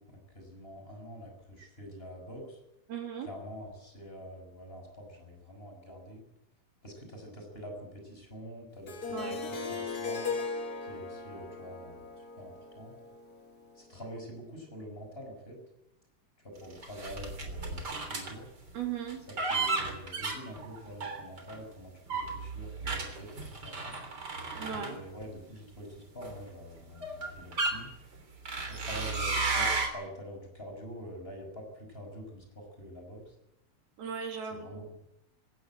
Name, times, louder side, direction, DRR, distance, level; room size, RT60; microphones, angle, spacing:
voice 1, 0.0-2.6 3.2-6.2 6.8-10.2 10.8-12.9 13.8-15.6 16.4-18.4 19.3-24.0 24.7-27.9 28.7-33.3 34.5-34.9, equal, 15° left, 2 dB, 6.2 m, -46 dB
voice 2, 2.9-3.3 9.1-9.4 18.7-19.2 24.6-25.0 34.0-34.8, right 7 dB, 70° right, 4 dB, 4.5 m, -37 dB
Harp, 8.9-13.8, left 4 dB, 50° left, 1.1 m, -38 dB
sound 1, 16.8-18.3 19.1-21.6 22.1-25.4 26.2-26.4 27.0-27.8 28.5-29.9, right 3 dB, 25° right, 3.4 m, -33 dB
20.0 x 17.5 x 8.9 m, 0.85 s
omnidirectional pair, 4.5 m